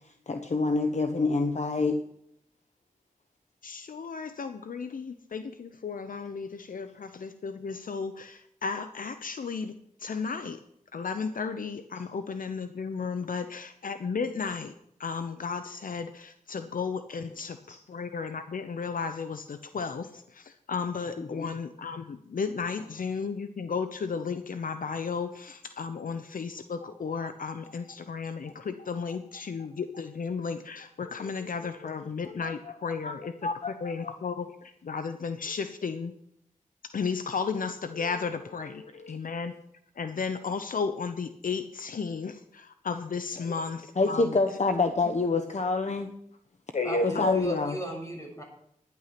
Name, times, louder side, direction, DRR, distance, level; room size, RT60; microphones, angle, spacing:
voice 1, 0.3-2.0 17.7-17.8 21.2-21.5 22.8-22.9 31.2-31.5 32.0-32.8 33.0-33.1 33.4-34.2 37.9-38.3 38.6-39.2 43.4-43.6 43.9-46.1 46.7-47.8, left 3 dB, 55° left, 6 dB, 1.1 m, -28 dB
voice 2, 3.6-9.7 10.0-10.6 10.9-14.7 15.0-17.6 17.9-20.1 20.7-33.3 33.8-34.5 34.8-36.1 36.9-38.8 39.1-39.5 40.0-42.3 42.8-43.8 44.1-44.2 47.1-47.3, left 5 dB, 75° left, 9 dB, 0.8 m, -34 dB
voice 3, 46.8-48.4, equal, 20° left, 0 dB, 7.0 m, -36 dB
12.0 x 10.5 x 5.9 m, 0.73 s
cardioid pair, 55°, 14 cm